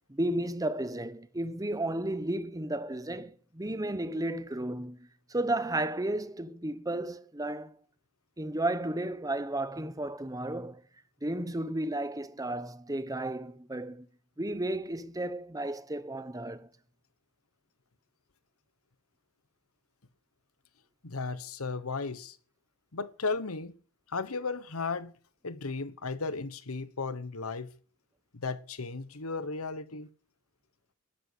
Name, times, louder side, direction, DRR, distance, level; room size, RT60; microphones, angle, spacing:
voice 1, 0.1-7.8 8.4-10.8 11.2-14.1 14.4-16.7, right 1 dB, 15° right, 1.0 m, -33 dB
voice 2, 21.0-22.4 22.9-23.8 24.1-25.1 25.4-27.7 28.3-30.1, left 4 dB, 85° left, 1.2 m, -35 dB
13.5 x 12.0 x 8.2 m
head